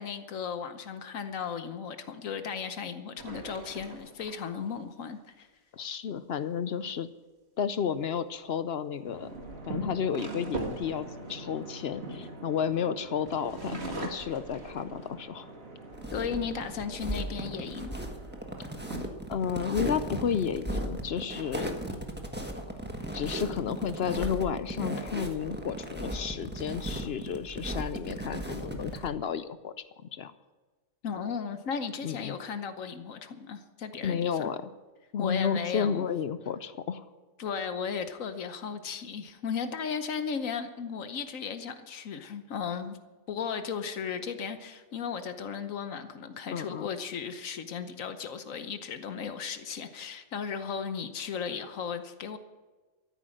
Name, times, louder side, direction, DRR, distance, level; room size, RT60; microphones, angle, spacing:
voice 1, 0.0-5.5 16.1-17.9 31.0-34.5 35.2-36.1 37.4-43.0 43.3-52.4, left 6 dB, 80° left, 9 dB, 1.3 m, -35 dB
sound 1, 3.2-4.8 7.7-8.0 9.0-12.8 13.3-15.4 15.9-16.0 16.4-16.9, right 3 dB, 50° right, 2.2 m, -42 dB
voice 2, 5.7-7.1 7.6-9.3 9.7-15.5 19.3-21.8 23.1-29.7 30.1-30.3 32.0-32.4 34.0-34.7 35.1-37.1 46.5-46.9, left 7 dB, 60° left, 13 dB, 0.8 m, -32 dB
sound 2, 9.0-19.0, right 1 dB, 85° right, 2.8 m, -44 dB
sound 3, 15.9-29.1, right 1 dB, 10° right, 1.3 m, -36 dB
14.0 x 9.2 x 7.7 m, 1.3 s
omnidirectional pair, 1.4 m